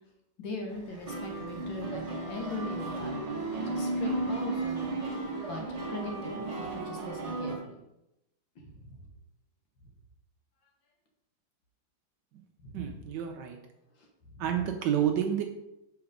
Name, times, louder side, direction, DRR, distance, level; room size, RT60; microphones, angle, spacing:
voice 1, 0.4-4.8 5.5-5.6 5.9-7.7 8.8-9.0 12.6-12.8, left 3 dB, 70° left, 1 dB, 1.8 m, -40 dB
sound 1, 0.7-7.6, right 2 dB, 40° right, 0.5 m, -34 dB
voice 2, 12.7-13.6 14.4-15.4, right 9 dB, 70° right, 4 dB, 1.1 m, -29 dB
5.8 x 4.0 x 5.0 m, 0.89 s
omnidirectional pair, 2.2 m